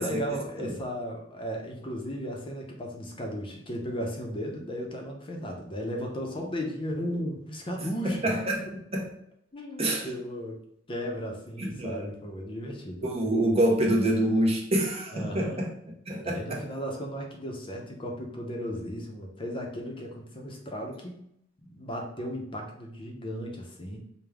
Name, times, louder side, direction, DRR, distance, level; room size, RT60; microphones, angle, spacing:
voice 1, 0.0-8.3 9.5-10.6 10.9-13.2 15.1-15.7 16.2-21.3 21.6-24.0, equal, 25° left, 1 dB, 0.6 m, -35 dB
voice 2, 8.0-8.6 8.9-9.1 9.8-10.1 11.6-12.1 13.0-15.7 16.1-16.6, right 1 dB, 30° right, -1 dB, 0.8 m, -26 dB
5.0 x 2.2 x 3.4 m, 0.74 s
head